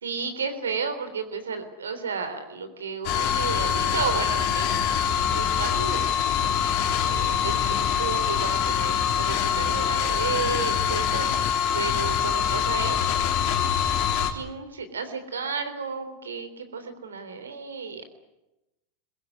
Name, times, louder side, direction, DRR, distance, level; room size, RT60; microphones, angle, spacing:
voice 1, 0.0-6.1 7.1-13.0 14.3-18.1, right 5 dB, 80° right, 9 dB, 3.6 m, -33 dB
sound 1, 3.0-14.3, left 8 dB, 55° left, 3.4 m, -24 dB
22.0 x 22.0 x 9.8 m, 0.95 s
figure-of-eight pair, 90°, 0 cm